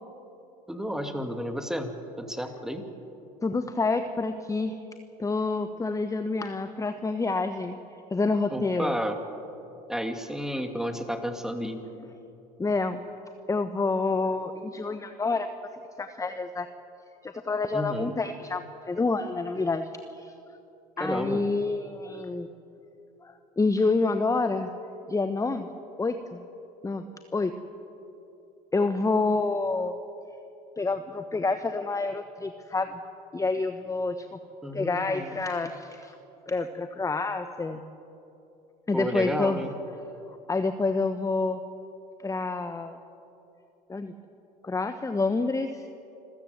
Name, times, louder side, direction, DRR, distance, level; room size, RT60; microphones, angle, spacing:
voice 1, 0.7-2.9 8.5-9.2 9.9-11.8 17.7-18.1 21.0-21.4 34.6-35.4 38.9-39.7, equal, ahead, 6 dB, 2.5 m, -32 dB
voice 2, 3.4-4.8 5.2-7.8 8.1-8.9 12.6-13.0 13.5-15.5 16.0-16.7 17.2-20.3 21.0-22.5 23.2-24.7 25.1-25.7 26.0-26.4 26.8-27.1 27.3-27.5 28.7-29.9 30.8-33.0 33.3-34.4 34.7-36.1 36.5-37.8 38.9-39.6 40.5-41.6 42.2-43.0 43.9-44.1 44.6-45.9, left 3 dB, 15° left, 9 dB, 1.1 m, -28 dB
27.0 x 14.5 x 7.9 m, 2.9 s
hypercardioid pair, 75°, 21 cm